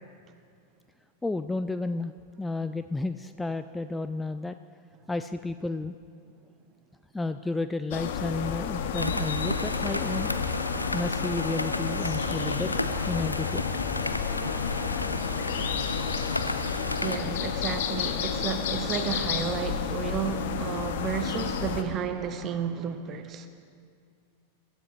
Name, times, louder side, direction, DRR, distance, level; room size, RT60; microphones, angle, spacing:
voice 1, 1.2-2.1 2.4-4.6 5.1-6.0 7.1-10.3 10.9-12.7 13.1-13.6, left 2 dB, 10° left, 10 dB, 0.3 m, -32 dB
sound 1, 7.9-21.8, left 7 dB, 55° left, 0.9 m, -31 dB
sound 2, 9.0-17.2, left 1 dB, 85° left, 0.5 m, -32 dB
voice 2, 17.0-23.5, right 7 dB, 30° right, 9 dB, 0.9 m, -32 dB
23.5 x 12.5 x 3.2 m, 2.3 s
figure-of-eight pair, 90°, 0 cm